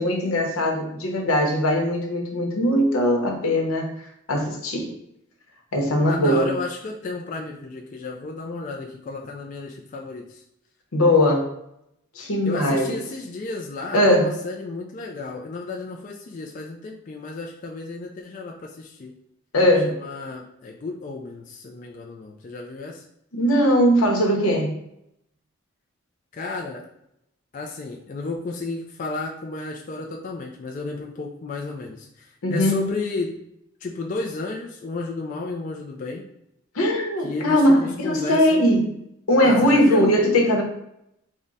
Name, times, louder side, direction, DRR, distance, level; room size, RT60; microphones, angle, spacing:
voice 1, 0.0-3.9 4.3-4.9 5.7-6.5 10.9-11.5 12.1-13.0 13.9-14.3 19.5-20.0 23.3-24.8 32.4-32.9 36.7-38.9 39.3-40.6, equal, 90° left, 1 dB, 0.8 m, -20 dB
voice 2, 6.0-10.4 12.5-19.1 19.8-23.0 26.3-26.9 27.5-33.4 33.8-36.2 37.2-38.7 39.4-40.1, left 3 dB, 40° left, 0 dB, 0.3 m, -33 dB
3.5 x 2.1 x 3.9 m, 0.79 s
head